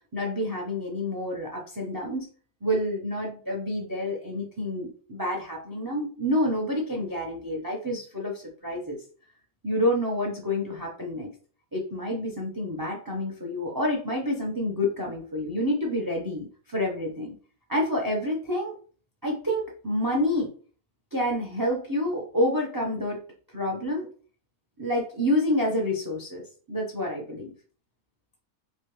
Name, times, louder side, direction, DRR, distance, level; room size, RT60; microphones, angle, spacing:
voice 1, 0.1-2.3 2.6-9.0 9.6-11.3 11.7-17.3 17.7-18.7 19.2-20.5 21.1-23.2 23.5-24.1 24.8-26.4 26.7-27.5, left 1 dB, 25° right, 0 dB, 0.4 m, -28 dB
3.2 x 2.9 x 3.0 m, 0.41 s
omnidirectional pair, 1.5 m